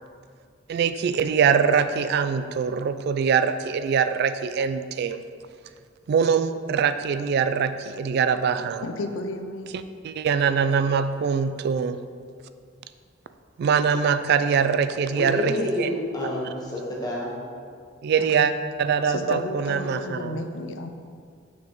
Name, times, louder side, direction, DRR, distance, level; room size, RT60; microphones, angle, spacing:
voice 1, 0.7-5.2 6.1-8.9 9.7-12.0 13.6-15.9 16.6-16.7 18.0-18.5 18.8-20.4, right 6 dB, 55° right, 11 dB, 0.3 m, -23 dB
voice 2, 8.8-9.7 18.2-18.5 19.0-20.9, left 2 dB, 70° left, 6 dB, 0.5 m, -33 dB
voice 3, 15.2-17.3, left 1 dB, 20° left, -4 dB, 1.2 m, -28 dB
6.2 x 5.8 x 3.0 m, 2.2 s
head